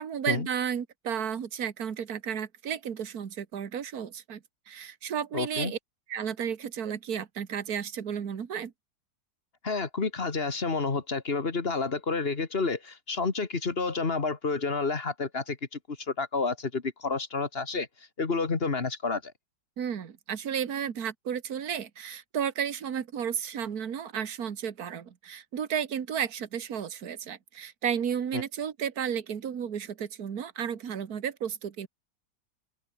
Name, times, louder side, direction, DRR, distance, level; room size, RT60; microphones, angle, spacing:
voice 1, 0.0-4.4 4.7-5.8 6.1-8.7 19.8-31.9, right 8 dB, 60° right, 2.0 m, -33 dB
voice 2, 5.3-5.7 9.6-17.9 18.2-19.3 28.3-28.4, left 4 dB, 35° left, 1.9 m, -30 dB
open air
omnidirectional pair, 1.8 m